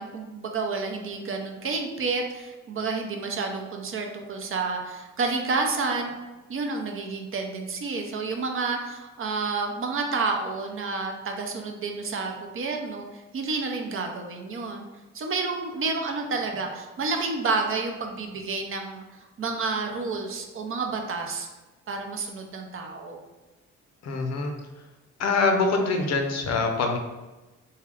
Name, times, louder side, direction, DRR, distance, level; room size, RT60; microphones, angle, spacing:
voice 1, 0.0-6.1 6.5-14.8 15.1-19.0 19.4-21.5 21.9-23.2, right 4 dB, 45° right, 3 dB, 0.7 m, -30 dB
voice 2, 24.0-24.5 25.2-27.0, left 3 dB, 60° left, 3 dB, 0.7 m, -24 dB
3.6 x 2.2 x 3.5 m, 1.1 s
cardioid pair, 90°, 30 cm